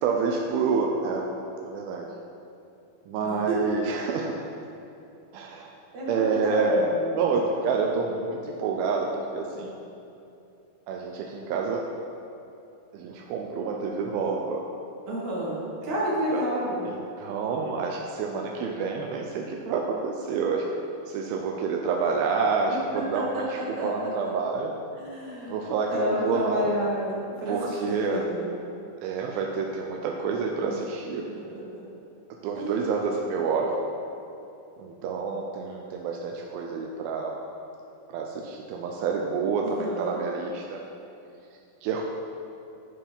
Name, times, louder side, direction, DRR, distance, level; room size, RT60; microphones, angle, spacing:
voice 1, 0.0-1.3 1.7-2.1 3.1-4.3 5.3-5.7 6.1-9.7 10.9-11.9 12.9-14.7 16.3-16.5 16.9-20.7 21.1-24.7 25.5-26.7 27.5-28.3 29.0-31.3 32.4-33.7 34.8-37.4 38.1-40.8 41.8-42.0, right 4 dB, 85° right, 1 dB, 2.5 m, -28 dB
voice 2, 5.9-7.2 15.1-15.6 15.8-16.8 22.7-24.3 24.9-25.6 25.9-28.5 30.7-30.8 31.1-31.8 32.5-32.8 39.6-40.2, equal, 50° right, -6 dB, 3.2 m, -30 dB
11.0 x 5.0 x 5.6 m, 2.7 s
omnidirectional pair, 4.2 m